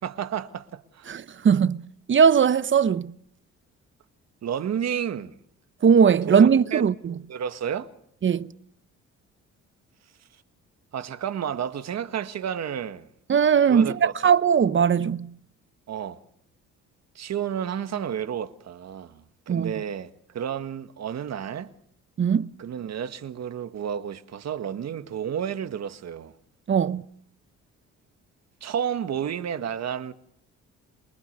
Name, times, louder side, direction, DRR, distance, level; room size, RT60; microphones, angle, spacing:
voice 1, 0.0-1.1 4.4-5.4 6.3-6.8 7.3-7.9 10.9-13.1 13.7-14.3 15.9-16.2 17.2-21.7 22.6-26.3 28.6-30.1, right 8 dB, 60° right, 1.8 m, -31 dB
voice 2, 1.1-1.8 2.1-3.1 5.8-7.1 8.2-8.5 13.3-15.3 19.5-19.7 22.2-22.5 26.7-27.0, right 7 dB, 40° right, 0.9 m, -19 dB
28.0 x 20.0 x 6.8 m
cardioid pair, 90°, 30 cm